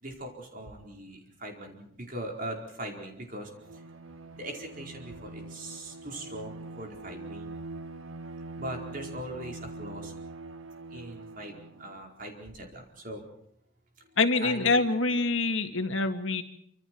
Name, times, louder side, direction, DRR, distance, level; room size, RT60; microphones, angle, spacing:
voice 1, 0.0-3.8 4.3-7.5 8.6-10.1 10.9-13.2 14.0-14.8, right 1 dB, 45° right, 2 dB, 4.6 m, -41 dB
Bowed string instrument, 3.5-12.0, right 2 dB, 85° right, 1.5 m, -43 dB
voice 2, 14.2-16.4, left 3 dB, 80° left, 7 dB, 2.0 m, -25 dB
27.5 x 26.0 x 4.6 m, 0.72 s
head